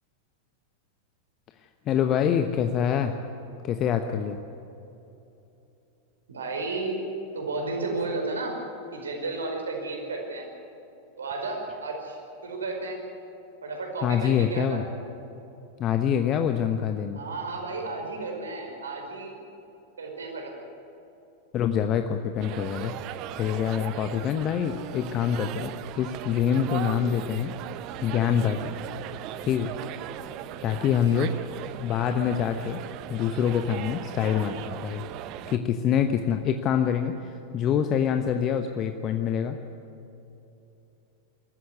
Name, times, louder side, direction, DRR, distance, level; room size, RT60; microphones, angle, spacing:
voice 1, 1.9-3.2 3.6-4.4 14.0-14.8 15.8-17.2 21.5-22.9 23.3-25.7 26.0-27.5 28.0-28.6 29.4-29.7 30.6-31.3 31.8-32.8 33.1-35.0 35.5-39.6, left 8 dB, 35° left, 7 dB, 1.1 m, -25 dB
voice 2, 6.3-7.0 7.3-8.5 8.9-10.5 11.2-12.2 12.4-13.0 13.6-14.8 17.1-19.4 20.0-20.6 31.0-31.3, right 3 dB, 70° right, 1 dB, 5.0 m, -33 dB
sound 1, 22.4-35.6, right 12 dB, 40° right, 0.9 m, -38 dB
22.5 x 14.5 x 9.6 m, 3.0 s
figure-of-eight pair, 90°, 0 cm